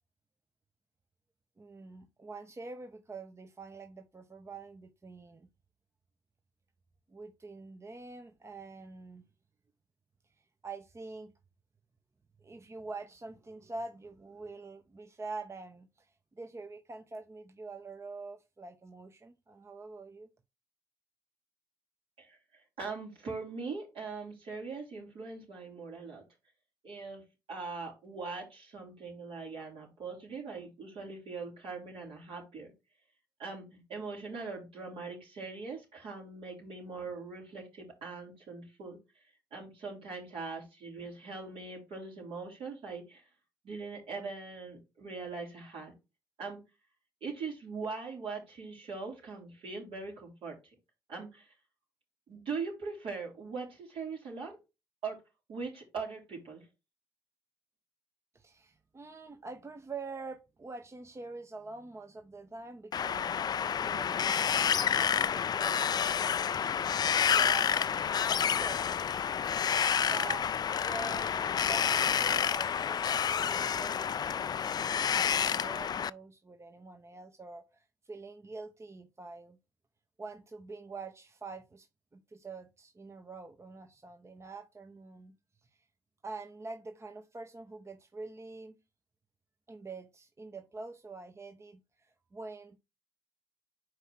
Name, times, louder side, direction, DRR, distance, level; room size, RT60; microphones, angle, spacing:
voice 1, 1.6-5.5 7.1-9.2 10.4-11.3 12.4-20.3 58.3-66.5 67.2-68.9 70.0-70.5 70.8-79.6 80.2-81.9 82.1-85.4 85.6-85.7 86.2-88.8 89.7-92.8, right 3 dB, 30° right, 0.9 m, -46 dB
voice 2, 22.8-26.2 26.8-27.2 27.5-32.7 33.4-39.0 39.5-43.2 43.6-45.9 46.4-46.6 47.2-50.6 51.1-51.5 52.3-54.6 55.0-55.2 55.5-56.7, right 4 dB, 65° right, 3.7 m, -41 dB
Wind, 62.9-76.1, left 8 dB, 45° left, 0.3 m, -29 dB
4.9 x 4.6 x 6.0 m
hypercardioid pair, 45°, 10 cm